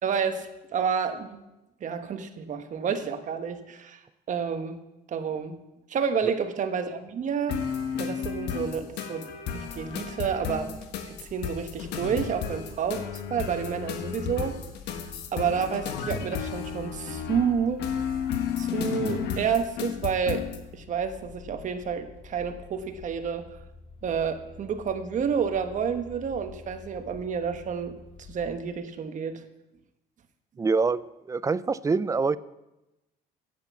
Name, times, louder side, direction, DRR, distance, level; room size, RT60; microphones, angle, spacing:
voice 1, 0.0-1.4 1.8-4.0 4.3-4.8 5.1-5.6 5.9-7.6 8.0-10.7 11.1-14.6 15.3-17.8 18.6-20.5 20.7-23.5 24.0-27.9 28.3-29.4, right 6 dB, 45° right, 7 dB, 1.2 m, -29 dB
sound 1, 7.5-20.6, left 7 dB, 80° left, 1.3 m, -33 dB
sound 2, 9.6-28.6, left 6 dB, 40° left, 1.7 m, -49 dB
voice 2, 30.6-31.0 31.3-32.4, right 4 dB, 20° right, 17 dB, 0.4 m, -25 dB
9.6 x 8.3 x 7.0 m, 0.96 s
cardioid pair, 110°, 17 cm